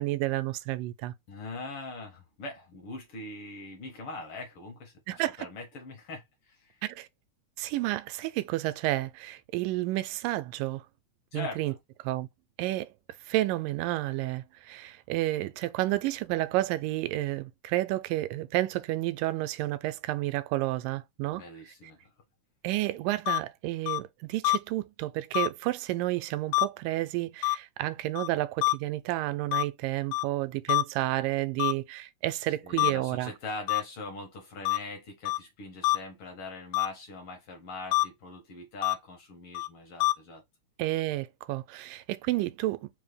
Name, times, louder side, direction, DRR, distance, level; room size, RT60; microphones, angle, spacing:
voice 1, 0.0-1.1 5.1-5.5 6.8-7.1 7.6-10.8 11.3-11.7 12.0-12.3 12.6-12.9 13.3-21.4 22.6-33.3 40.8-42.9, right 17 dB, 90° right, 2.2 m, -30 dB
voice 2, 1.3-6.8 11.3-11.6 21.3-22.1 32.6-40.4, left 3 dB, 65° left, 1.3 m, -41 dB
sound 1, 23.3-23.4 23.9-24.0 24.4-24.6 25.3-25.5 26.5-26.7 27.4-27.6 28.2-28.3 28.6-28.7 29.5-29.6 30.1-30.2 30.7-30.8 31.6-31.7 32.8-32.9 33.7-33.8 34.7-34.8 35.3-35.4 35.8-36.0 36.7-36.9 37.9-38.0 38.8-39.0 39.6-39.7 40.0-40.1, left 19 dB, 90° left, 2.2 m, -25 dB
5.1 x 2.1 x 3.2 m
omnidirectional pair, 3.7 m